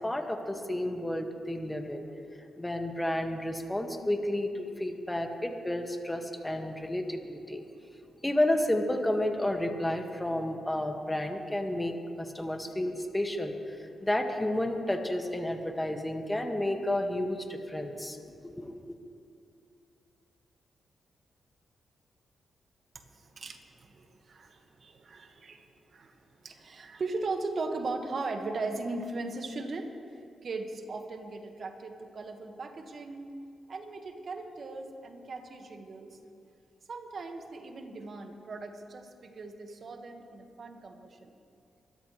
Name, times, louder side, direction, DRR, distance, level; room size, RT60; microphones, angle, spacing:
voice 1, 0.0-2.1 2.6-7.6 8.2-18.9, left 1 dB, 15° left, 4 dB, 1.9 m, -31 dB
voice 2, 22.9-29.9 30.4-33.3 33.7-36.2 36.9-41.3, right 3 dB, 60° right, 5 dB, 1.7 m, -38 dB
25.0 x 13.0 x 3.3 m, 2.5 s
supercardioid pair, 50°, 0 cm